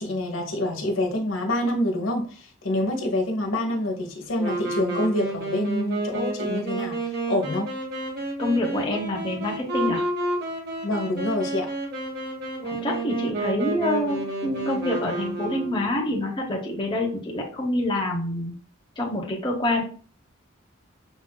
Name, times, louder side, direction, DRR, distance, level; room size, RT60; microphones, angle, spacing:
voice 1, 0.0-7.7 10.8-11.7, left 1 dB, 75° left, 2 dB, 1.2 m, -26 dB
Wind instrument woodwind instrument, 4.3-16.1, right 2 dB, 55° right, 1.3 m, -30 dB
voice 2, 8.4-10.0 12.6-18.5 19.0-19.8, left 1 dB, 25° left, -1 dB, 0.9 m, -26 dB
6.0 x 3.3 x 2.2 m, 0.40 s
head